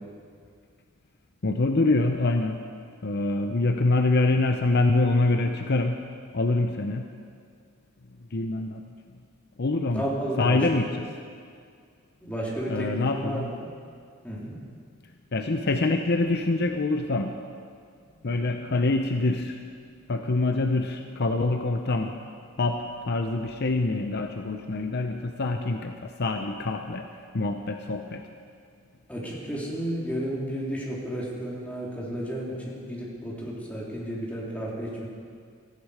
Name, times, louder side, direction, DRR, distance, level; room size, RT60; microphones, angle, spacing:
voice 1, 1.4-2.6 3.0-6.0 6.3-7.1 8.3-8.8 9.6-10.0 10.4-10.9 12.7-13.5 15.3-17.3 18.2-19.6 20.1-22.1 22.6-27.1 27.3-28.2, left 2 dB, 55° left, 5 dB, 0.7 m, -25 dB
voice 2, 9.9-10.9 12.2-13.7 14.2-14.5 29.1-35.1, equal, 5° left, -5 dB, 3.3 m, -32 dB
16.5 x 14.5 x 5.0 m, 2.2 s
head